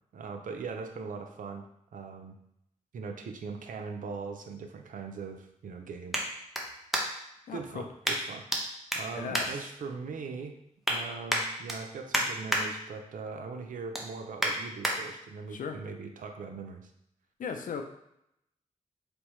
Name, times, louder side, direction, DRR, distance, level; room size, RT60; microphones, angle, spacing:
voice 1, 0.1-1.6 1.9-2.4 2.9-6.3 7.5-10.6 10.9-16.9, right 4 dB, 90° right, 5 dB, 0.5 m, -40 dB
sound 1, 3.5-7.4 8.0-8.6 8.9-10.2 10.6-11.0 11.3-12.6 13.0-13.3 13.6-14.9 15.5-15.6, equal, ahead, 0.8 m, -32 dB
voice 2, 7.5-7.9 9.1-9.6 15.5-15.8 17.4-17.8, left 6 dB, 85° left, 6 dB, 0.5 m, -37 dB
4.3 x 3.5 x 3.0 m, 0.78 s
cardioid pair, 75°, 13 cm